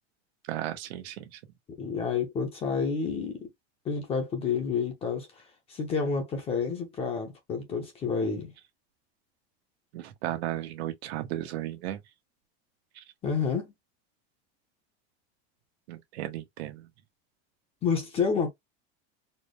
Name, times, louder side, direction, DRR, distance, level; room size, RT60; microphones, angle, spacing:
voice 1, 0.5-1.4 9.9-12.0 12.9-13.0 15.9-16.9, right 13 dB, 80° right, 1.2 m, -35 dB
voice 2, 1.8-3.5 3.8-5.4 5.7-8.5 13.2-13.7 17.8-18.5, left 5 dB, 20° left, 0.7 m, -29 dB
4.3 x 2.2 x 3.1 m
supercardioid pair, 180°, 32 cm